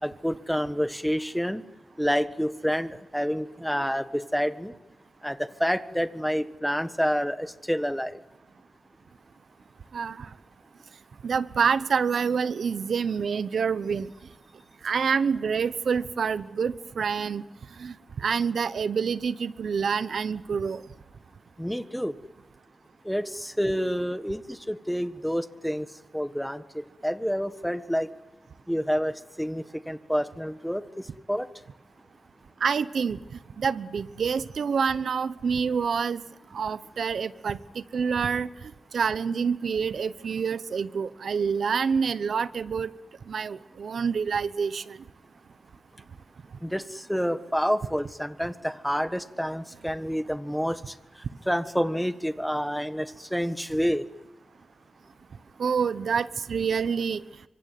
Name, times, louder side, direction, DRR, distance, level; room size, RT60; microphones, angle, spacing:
voice 1, 0.0-1.6 2.0-4.7 5.2-8.2 21.6-22.1 23.0-25.9 26.1-28.1 28.7-31.5 46.6-51.0 51.4-54.1, equal, ahead, 12 dB, 1.4 m, -28 dB
voice 2, 9.9-10.3 11.2-14.1 14.8-17.4 17.8-20.8 32.6-33.2 33.6-36.2 36.5-42.9 43.3-45.0 55.6-57.2, right 6 dB, 75° right, 15 dB, 1.0 m, -27 dB
25.5 x 24.0 x 9.5 m, 1.1 s
wide cardioid pair, 120°, 0 cm